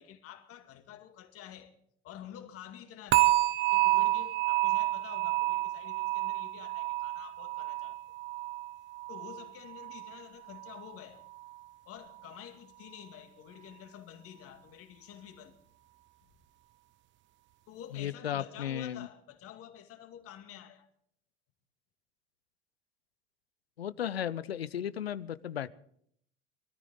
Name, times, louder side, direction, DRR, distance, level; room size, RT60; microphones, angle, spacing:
voice 1, 0.0-1.7 2.0-8.0 9.1-11.2 11.8-15.6 17.7-20.9, left 10 dB, 50° left, 2.3 m, -49 dB
sound 1, 3.1-10.2 10.5-10.9 11.4-11.5, right 18 dB, 40° right, 0.8 m, -29 dB
voice 2, 17.9-19.1 23.8-25.7, left 10 dB, 90° left, 0.6 m, -35 dB
24.0 x 13.5 x 3.9 m
hypercardioid pair, 75°, 30 cm